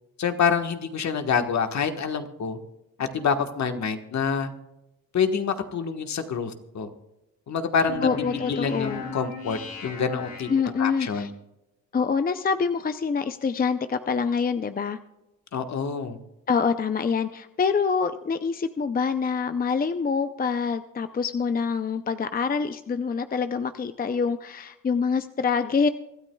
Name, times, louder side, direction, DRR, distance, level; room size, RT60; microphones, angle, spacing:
voice 1, 0.2-2.6 3.0-4.5 5.1-6.9 7.5-8.1 8.5-10.5 10.8-11.3 15.5-16.2, left 6 dB, 60° left, 7 dB, 1.4 m, -26 dB
sound 1, 7.9-11.2, left 4 dB, 85° left, 4.3 m, -37 dB
voice 2, 8.0-9.0 10.5-11.3 11.9-15.0 16.5-25.9, left 5 dB, 30° left, 10 dB, 0.5 m, -26 dB
24.0 x 13.0 x 2.3 m, 0.96 s
cardioid pair, 90°, 32 cm